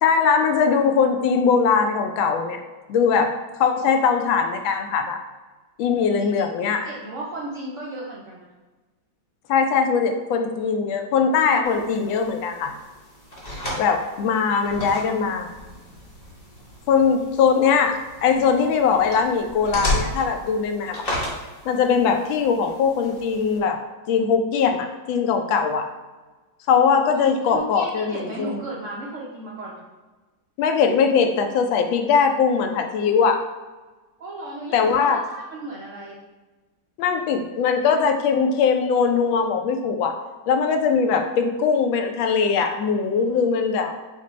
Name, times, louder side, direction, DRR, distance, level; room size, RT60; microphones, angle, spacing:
voice 1, 0.0-2.6 2.9-3.3 3.6-5.2 5.8-6.9 9.5-12.8 13.8-15.5 16.9-21.2 21.6-23.8 24.1-25.9 26.7-28.6 30.6-33.4 34.7-35.2 37.0-40.2 40.5-43.9, left 6 dB, 90° left, 5 dB, 1.3 m, -21 dB
voice 2, 6.6-8.5 17.1-17.3 27.2-29.8 34.2-36.2, right 2 dB, 75° right, -4 dB, 0.6 m, -35 dB
sound 1, 11.6-23.6, left 1 dB, 30° left, 0.8 m, -34 dB
5.2 x 2.1 x 4.2 m, 1.2 s
omnidirectional pair, 2.1 m